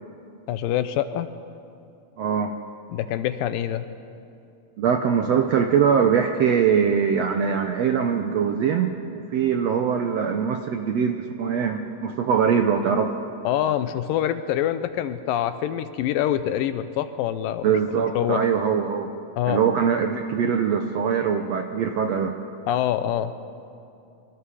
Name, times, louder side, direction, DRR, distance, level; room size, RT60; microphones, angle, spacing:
voice 1, 0.5-1.3 2.9-3.9 13.4-18.4 19.4-19.6 22.7-23.3, left 11 dB, 80° left, 11 dB, 2.3 m, -25 dB
voice 2, 2.2-2.5 4.8-13.1 17.6-19.1 19.5-22.3, right 7 dB, 80° right, 5 dB, 1.5 m, -22 dB
25.0 x 25.0 x 4.9 m, 2.6 s
omnidirectional pair, 4.1 m